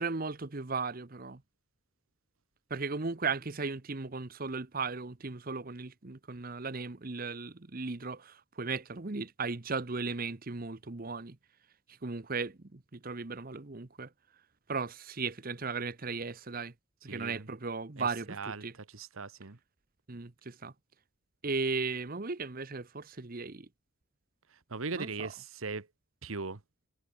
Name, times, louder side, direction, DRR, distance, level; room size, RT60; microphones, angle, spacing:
voice 1, 0.0-1.4 2.7-11.4 11.9-14.1 14.7-16.7 17.0-18.7 20.1-20.7 21.4-23.7 24.9-25.3, right 4 dB, 40° right, 0.9 m, -36 dB
voice 2, 17.1-17.5 18.0-19.6 24.5-25.9 26.2-26.6, right 4 dB, 70° right, 1.3 m, -39 dB
head